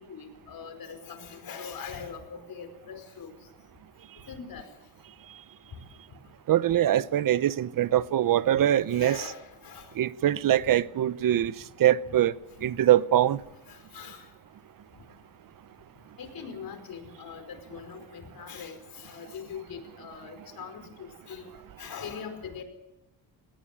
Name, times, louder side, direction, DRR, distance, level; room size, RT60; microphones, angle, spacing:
voice 1, 0.1-3.3 4.3-4.7 8.9-9.9 12.0-12.1 13.7-14.2 16.2-18.8 19.0-21.5 21.8-22.6, left 6 dB, 60° left, 5.0 m, -42 dB
voice 2, 6.5-9.2 10.0-11.5 11.8-12.3 12.6-13.4, right 12 dB, 55° right, 0.9 m, -23 dB
19.0 x 19.0 x 7.5 m
cardioid pair, 110°, 40 cm